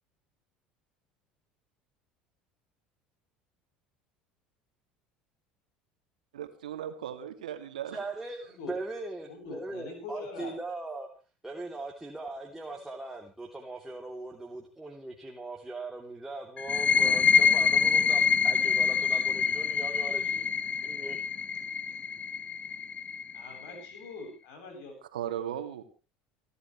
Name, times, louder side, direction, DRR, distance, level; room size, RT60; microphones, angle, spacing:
voice 1, 6.3-8.0 25.1-25.8, right 10 dB, 75° right, 8 dB, 2.4 m, -37 dB
voice 2, 7.8-11.1 11.4-20.5 20.8-21.2, right 2 dB, 5° right, 0 dB, 2.9 m, -40 dB
voice 3, 9.3-10.6 12.4-12.8 16.9-17.2 23.3-24.9, left 3 dB, 65° left, 4 dB, 7.9 m, -43 dB
sound 1, 16.6-24.0, left 6 dB, 30° left, 1.1 m, -26 dB
29.0 x 11.0 x 3.2 m, 0.32 s
figure-of-eight pair, 65°, 4 cm